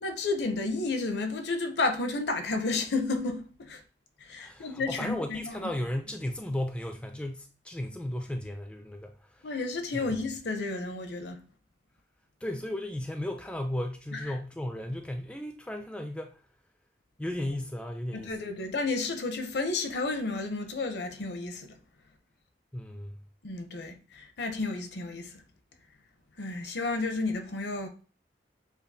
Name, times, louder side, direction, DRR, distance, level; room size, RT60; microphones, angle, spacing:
voice 1, 0.0-3.8 4.2-5.7 9.4-11.4 14.1-14.3 18.1-21.7 23.4-25.3 26.4-27.9, left 3 dB, 70° left, 0.6 m, -31 dB
voice 2, 4.4-9.5 9.9-10.1 12.4-16.4 17.2-18.4 22.7-23.2, left 1 dB, 5° left, 0.3 m, -35 dB
7.0 x 2.4 x 2.7 m
head